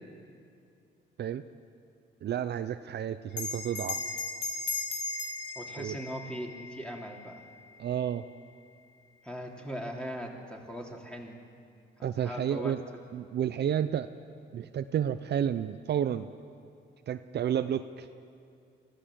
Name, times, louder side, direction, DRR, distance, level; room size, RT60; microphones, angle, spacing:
voice 1, 2.2-4.0 5.8-6.0 7.8-8.2 12.0-12.8 13.1-14.1 14.5-16.3 17.1-18.1, right 9 dB, 55° right, 10 dB, 0.7 m, -31 dB
Bell, 3.3-8.2, left 4 dB, 65° left, 2.6 m, -37 dB
voice 2, 5.5-7.4 9.2-11.4 12.0-12.7, equal, 5° left, 0 dB, 3.2 m, -39 dB
24.0 x 15.5 x 7.7 m, 2.4 s
cardioid pair, 90°, 20 cm